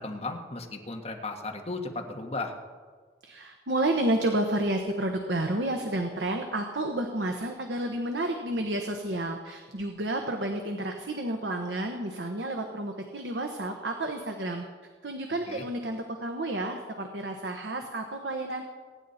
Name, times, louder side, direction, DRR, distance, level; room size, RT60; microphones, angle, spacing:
voice 1, 0.0-2.5 15.5-15.6, left 2 dB, 35° left, 2 dB, 1.6 m, -35 dB
voice 2, 3.2-14.6 15.0-18.6, right 1 dB, 85° right, 4 dB, 1.2 m, -30 dB
23.5 x 10.0 x 4.3 m, 1.5 s
head